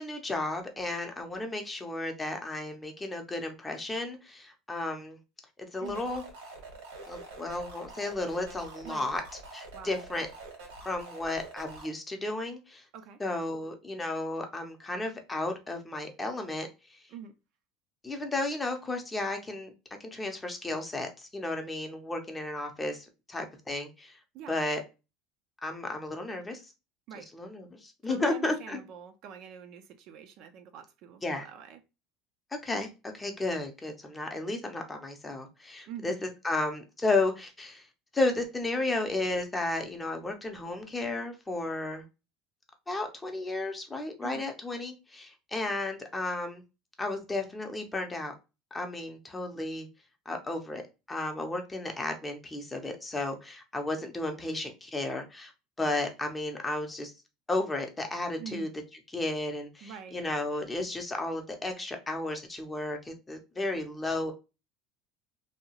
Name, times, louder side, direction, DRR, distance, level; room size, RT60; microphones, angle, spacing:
voice 1, 0.0-5.2 5.7-6.2 7.1-9.2 9.5-10.3 10.8-12.8 13.2-16.7 18.0-19.7 20.0-24.2 24.5-24.8 25.6-26.6 27.2-28.8 31.2-31.5 32.6-37.9 38.1-42.0 42.9-46.6 47.0-48.3 48.7-49.9 50.3-50.8 51.1-55.5 55.8-57.1 57.5-58.7 59.1-64.3, left 2 dB, 15° left, 0.6 m, -33 dB
sound 1, 5.8-11.9, right 3 dB, 85° right, 1.5 m, -46 dB
voice 2, 28.0-31.8 35.9-36.2 44.2-44.5 58.4-58.7 59.8-60.2, right 8 dB, 55° right, 0.4 m, -44 dB
2.7 x 2.3 x 2.8 m
supercardioid pair, 125°, 0 cm